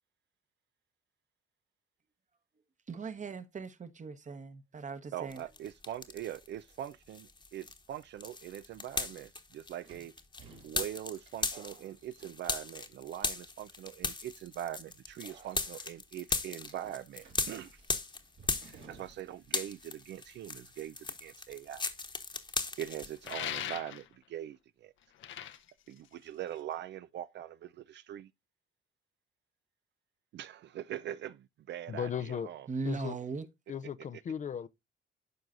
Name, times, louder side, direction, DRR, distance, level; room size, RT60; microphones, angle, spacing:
voice 1, 2.9-5.4 32.7-33.4, right 4 dB, 40° right, 1.1 m, -39 dB
voice 2, 5.1-10.1 10.6-17.8 18.5-21.8 22.8-24.9 25.9-28.3 30.3-32.7, right 11 dB, 65° right, 0.4 m, -42 dB
sound 1, 5.3-6.5 6.8-19.2 19.4-23.3, left 3 dB, 25° left, 1.1 m, -38 dB
sound 2, 8.5-8.6 9.8-12.8 13.1-13.6 14.2-14.5 15.2-15.9 16.7-19.4 19.7-19.8 21.0-21.3, right 5 dB, 80° right, 2.7 m, -57 dB
sound 3, 23.2-24.2 25.0-26.7, left 11 dB, 75° left, 0.8 m, -40 dB
voice 3, 31.9-32.5 32.8-33.2 33.7-34.7, left 8 dB, 40° left, 0.5 m, -36 dB
12.0 x 4.7 x 2.5 m
cardioid pair, 90°, 20 cm